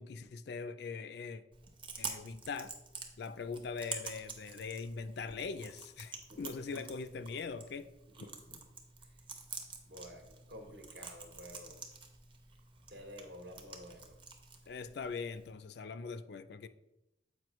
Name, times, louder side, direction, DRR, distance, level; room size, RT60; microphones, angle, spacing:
voice 1, 0.0-1.4 2.0-2.7 3.2-7.9 14.7-16.7, left 5 dB, 60° left, 0.4 m, -41 dB
Chewing mastication, 1.5-15.5, right 5 dB, 25° right, 0.7 m, -48 dB
voice 2, 6.3-6.8 8.1-8.6 9.0-9.2 9.9-11.8 12.9-14.2, equal, 60° right, 1.2 m, -51 dB
7.7 x 4.9 x 3.0 m
head